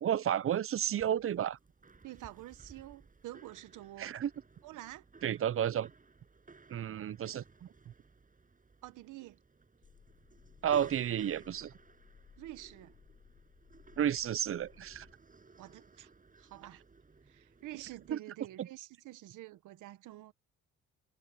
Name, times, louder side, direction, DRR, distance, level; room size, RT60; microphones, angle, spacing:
voice 1, 0.0-1.6 4.0-4.3 5.2-5.9 6.7-7.7 10.6-11.7 14.0-15.1 18.1-18.2 18.6-18.7, right 10 dB, 45° right, 0.6 m, -32 dB
sound 1, 1.0-18.1, right 4 dB, 25° right, 6.9 m, -59 dB
voice 2, 2.0-4.1 4.6-5.0 8.8-9.4 12.4-12.9 15.6-16.1 16.4-16.8 17.3-20.3, right 16 dB, 85° right, 1.0 m, -48 dB
sound 2, 9.8-15.1, left 7 dB, 50° left, 2.9 m, -61 dB
cardioid pair, 90°, 30 cm